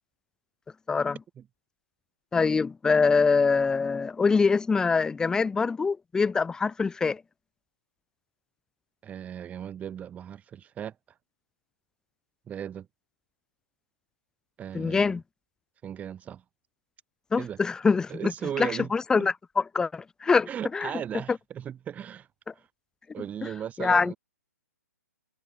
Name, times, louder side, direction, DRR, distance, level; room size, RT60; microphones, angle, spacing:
voice 1, 2.3-7.2 14.7-15.2 17.3-18.3 18.6-20.9 23.8-24.1, left 4 dB, 5° left, 0.8 m, -24 dB
voice 2, 9.0-10.9 12.5-12.9 14.6-15.2 15.8-16.4 17.4-17.6 18.1-18.9 19.2-19.3 20.5-22.3 23.1-24.2, right 9 dB, 15° right, 6.5 m, -36 dB
figure-of-eight pair, 125°, 9 cm